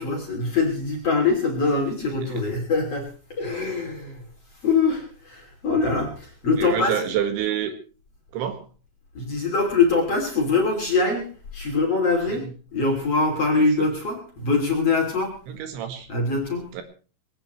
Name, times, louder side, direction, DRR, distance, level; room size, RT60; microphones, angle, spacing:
voice 1, 0.0-7.1 9.1-15.4 16.1-16.7, left 3 dB, 35° left, 1 dB, 3.0 m, -23 dB
voice 2, 6.6-7.7 8.3-8.6 15.5-16.1 16.7-16.8, right 9 dB, 70° right, 7 dB, 3.8 m, -27 dB
21.0 x 17.5 x 3.1 m, 0.37 s
omnidirectional pair, 5.7 m